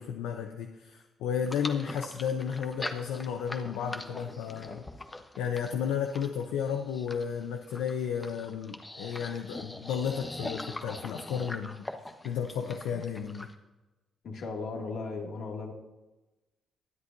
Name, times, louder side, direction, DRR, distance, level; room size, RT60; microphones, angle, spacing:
voice 1, 0.0-4.9 5.4-11.9 12.2-13.5, left 7 dB, 90° left, 4 dB, 0.7 m, -33 dB
sound 1, 1.5-13.5, left 2 dB, 20° left, 1.2 m, -42 dB
voice 2, 14.2-15.7, left 4 dB, 70° left, 0 dB, 2.3 m, -36 dB
23.0 x 8.1 x 2.7 m, 1.1 s
supercardioid pair, 65°, 0 cm